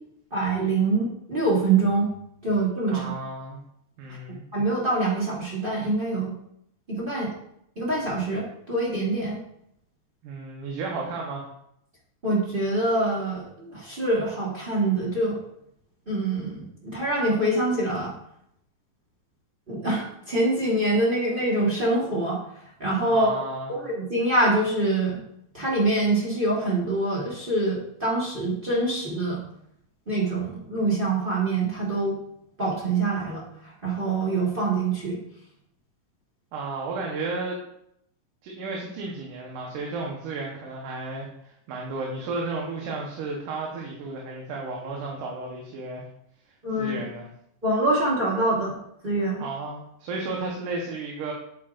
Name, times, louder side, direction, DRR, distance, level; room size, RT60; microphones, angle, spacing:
voice 1, 0.3-2.1 2.4-3.1 4.5-6.3 6.9-7.3 7.8-9.4 12.2-15.4 16.1-18.1 19.7-22.4 22.8-23.3 23.7-25.2 25.5-29.4 30.1-32.2 32.6-35.2 46.6-47.0 47.6-48.8 49.0-49.4, right 2 dB, 50° right, -5 dB, 0.6 m, -25 dB
voice 2, 2.9-3.6 4.0-4.4 10.2-11.5 23.1-23.7 36.5-37.6 38.4-46.0 46.7-47.3 49.4-51.3, right 3 dB, 80° right, -2 dB, 2.7 m, -33 dB
8.4 x 7.8 x 2.5 m, 0.73 s
omnidirectional pair, 3.7 m